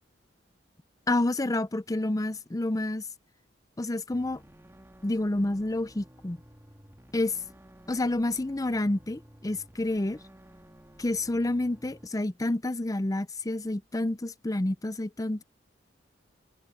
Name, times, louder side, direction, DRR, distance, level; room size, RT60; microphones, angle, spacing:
voice 1, 1.1-3.0 3.8-4.4 5.0-6.4 7.1-7.3 7.9-10.2 11.0-15.4, left 2 dB, 20° left, 0.6 m, -29 dB
sound 1, 4.1-12.1, equal, 15° right, 2.1 m, -54 dB
open air
head